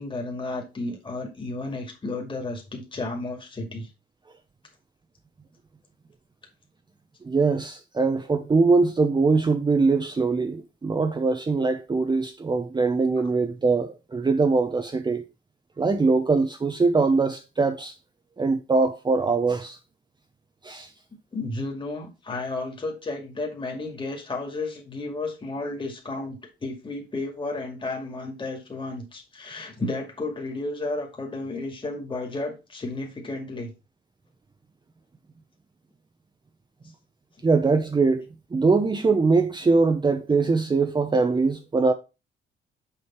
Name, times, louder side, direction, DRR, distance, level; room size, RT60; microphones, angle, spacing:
voice 1, 0.0-3.9 21.3-33.7, left 2 dB, 25° left, 2.2 m, -32 dB
voice 2, 7.2-15.2 15.8-17.9 18.4-19.8 20.6-20.9 37.4-38.2 38.5-41.9, right 4 dB, 20° right, 0.8 m, -22 dB
6.7 x 5.2 x 4.5 m
cardioid pair, 90°, 20 cm